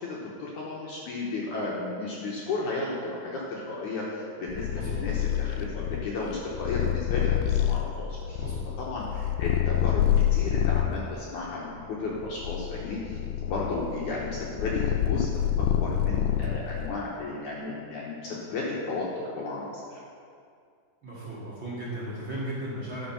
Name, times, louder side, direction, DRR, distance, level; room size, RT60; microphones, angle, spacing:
voice 1, 0.0-8.4 8.8-10.0 10.3-20.0, left 3 dB, 70° left, -4 dB, 2.1 m, -34 dB
Purr, 4.5-11.0 11.7-16.9, left 11 dB, 85° left, 2.6 m, -27 dB
voice 2, 4.7-5.0 8.4-8.7 21.0-23.1, right 1 dB, 40° right, -8 dB, 2.0 m, -36 dB
12.5 x 5.3 x 5.8 m, 2.3 s
omnidirectional pair, 4.5 m